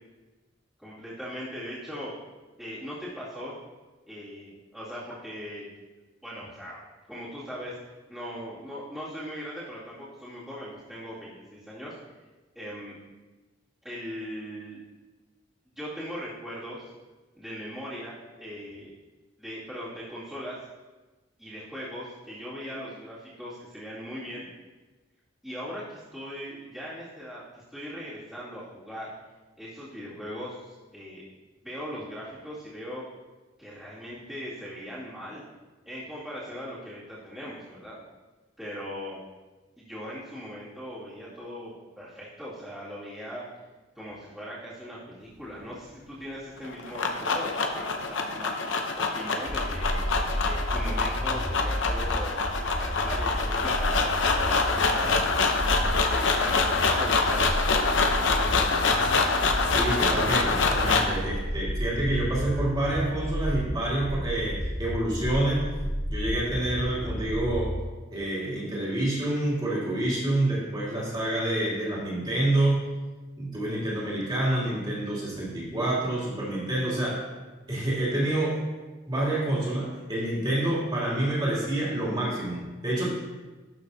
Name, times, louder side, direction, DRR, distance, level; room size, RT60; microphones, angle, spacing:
voice 1, 0.8-2.1 2.6-3.5 4.1-5.7 6.2-6.8 7.1-7.8 8.1-11.9 12.5-13.0 13.8-14.8 15.7-16.9 17.4-18.9 19.4-20.6 21.4-24.5 25.4-29.1 29.6-31.2 31.6-33.0 33.6-35.4 35.9-38.0 38.6-39.2 39.8-43.4 43.9-50.0 50.4-55.6 56.0-59.1, equal, ahead, -14 dB, 2.3 m, -39 dB
sound 1, 46.6-61.2, left 4 dB, 70° left, 0.7 m, -25 dB
sound 2, 49.5-67.8, equal, 15° left, 0.5 m, -32 dB
voice 2, 59.6-65.7 66.1-67.8 68.1-72.9 73.4-77.3 77.7-78.7 79.1-83.1, right 1 dB, 25° right, -8 dB, 2.8 m, -28 dB
12.0 x 6.0 x 2.7 m, 1.2 s
head